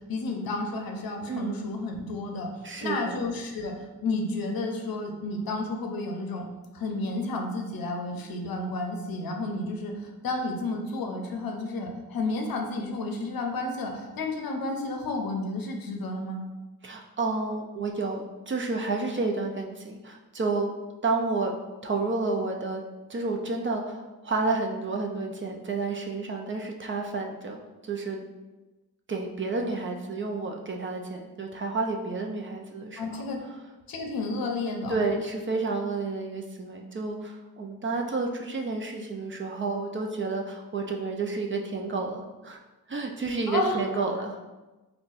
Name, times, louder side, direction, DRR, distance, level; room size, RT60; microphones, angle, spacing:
voice 1, 0.1-6.4 6.7-16.4 33.0-33.4 33.9-35.0 43.5-44.0, left 2 dB, 70° left, 3 dB, 0.6 m, -31 dB
voice 2, 1.3-1.6 2.6-3.2 16.8-20.7 21.0-22.8 23.1-28.2 29.1-33.2 34.9-42.6 42.9-44.4, right 3 dB, 35° right, 2 dB, 0.4 m, -30 dB
3.8 x 2.2 x 2.5 m, 1.1 s
cardioid pair, 60°, 37 cm